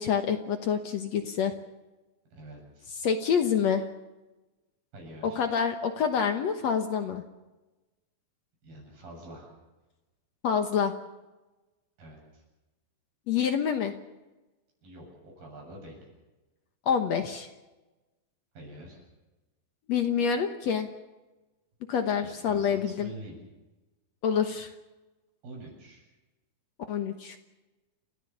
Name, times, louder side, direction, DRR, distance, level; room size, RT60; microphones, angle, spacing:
voice 1, 0.0-1.5 3.0-3.9 5.2-7.2 10.4-11.0 13.3-13.9 16.9-17.5 19.9-20.9 21.9-23.1 24.2-24.7 26.9-27.4, left 7 dB, 60° left, 7 dB, 2.0 m, -27 dB
voice 2, 2.3-2.9 4.9-5.4 8.6-9.5 12.0-12.4 14.8-16.0 18.5-19.0 22.2-23.4 25.4-26.0, right 1 dB, 80° right, 0 dB, 9.5 m, -46 dB
30.0 x 14.0 x 7.2 m, 1.1 s
omnidirectional pair, 4.1 m